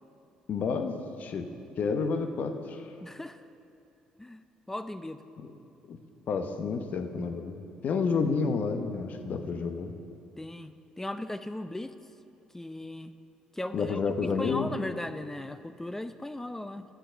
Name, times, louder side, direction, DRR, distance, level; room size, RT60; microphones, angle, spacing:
voice 1, 0.5-1.5 1.8-2.9 5.9-6.0 6.3-9.9 13.7-14.7, left 5 dB, 55° left, 7 dB, 0.8 m, -30 dB
voice 2, 3.0-3.4 4.2-4.4 4.7-5.2 10.4-11.9 12.5-13.2 13.5-16.9, left 1 dB, 10° left, 11 dB, 0.4 m, -37 dB
8.9 x 7.7 x 6.2 m, 2.6 s
hypercardioid pair, 55°, 3 cm